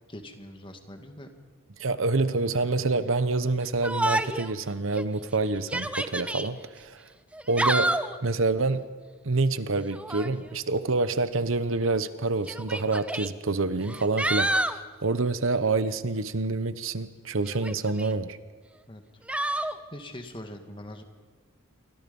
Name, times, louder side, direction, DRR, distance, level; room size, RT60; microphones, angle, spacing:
voice 1, 0.1-1.3 18.9-19.2 19.5-21.0, left 1 dB, 25° left, 6 dB, 2.0 m, -43 dB
voice 2, 1.8-7.0 7.5-8.8 9.2-14.5 15.0-18.4, right 3 dB, 70° right, 13 dB, 1.0 m, -27 dB
Yell, 3.8-4.5 4.9-5.0 5.6-6.5 7.3-8.2 9.9-10.4 11.5-11.6 12.5-13.3 13.8-14.8 17.4-18.1 19.3-19.8, right 1 dB, 5° right, 0.7 m, -28 dB
29.0 x 24.0 x 5.5 m, 1.4 s
head